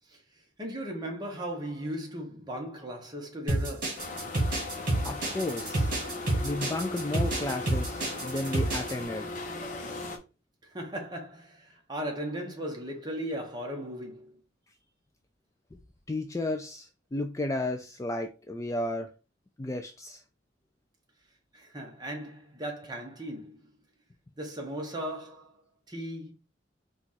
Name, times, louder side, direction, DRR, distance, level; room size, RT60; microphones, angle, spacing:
voice 1, 0.6-4.0 10.6-14.3 21.5-23.6 24.4-25.5 25.9-26.3, equal, 20° right, 1.0 m, -37 dB
sound 1, 3.5-8.9, right 2 dB, 45° right, 1.9 m, -29 dB
sound 2, 4.0-10.2, left 2 dB, 40° left, 0.8 m, -38 dB
voice 2, 5.0-5.9 6.4-9.3 15.7-15.8 16.1-19.1 19.6-20.2, left 2 dB, 15° left, 0.3 m, -33 dB
4.5 x 2.4 x 4.0 m
head